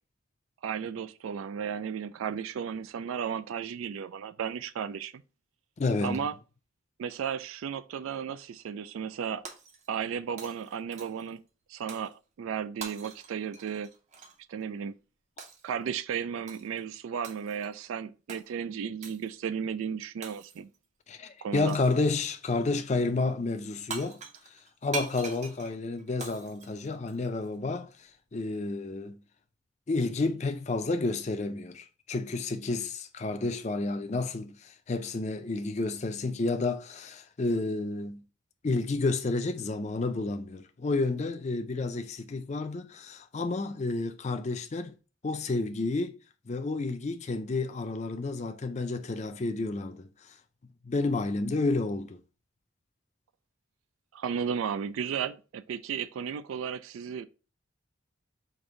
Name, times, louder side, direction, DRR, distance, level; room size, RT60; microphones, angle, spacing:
voice 1, 0.6-5.2 6.0-6.3 7.0-9.4 9.9-11.4 11.7-13.9 14.5-14.9 15.6-20.7 21.4-21.8 54.1-57.2, right 7 dB, 80° right, 0.3 m, -34 dB
voice 2, 5.8-6.2 21.1-24.2 24.5-29.2 29.9-38.2 38.6-45.0 45.2-46.2 46.5-50.3 50.8-52.2, left 3 dB, 35° left, 0.4 m, -30 dB
Shatter, 9.4-10.1 10.4-11.3 11.9-12.1 12.8-14.4 15.4-15.7 16.5-16.8 17.2-17.7 18.3-18.5 19.0-19.3 20.2-20.8 21.7-22.0 23.6-23.7 23.9-27.5, right 4 dB, 35° right, 0.6 m, -43 dB
5.2 x 2.6 x 3.7 m
head